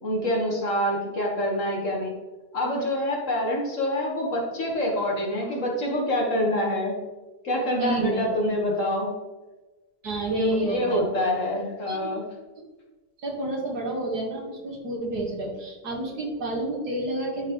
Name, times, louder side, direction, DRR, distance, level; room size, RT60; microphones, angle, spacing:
voice 1, 0.0-2.1 2.5-7.0 7.4-9.1 10.2-12.3, left 1 dB, 50° left, -2 dB, 1.9 m, -26 dB
voice 2, 7.8-8.3 10.0-11.0 11.9-12.1 13.2-17.5, right 2 dB, 70° right, -2 dB, 2.3 m, -30 dB
12.0 x 4.1 x 3.2 m, 1.2 s
omnidirectional pair, 1.7 m